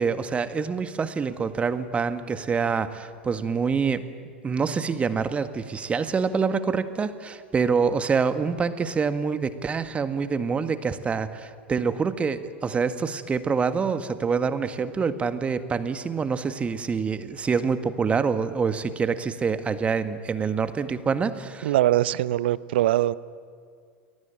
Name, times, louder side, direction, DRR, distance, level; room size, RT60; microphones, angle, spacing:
voice 1, 0.0-4.0 4.4-21.7, right 5 dB, 20° right, 11 dB, 1.7 m, -26 dB
voice 2, 21.6-23.1, right 14 dB, 60° right, 19 dB, 0.8 m, -22 dB
29.5 x 22.5 x 8.9 m, 2.1 s
figure-of-eight pair, 85°, 6 cm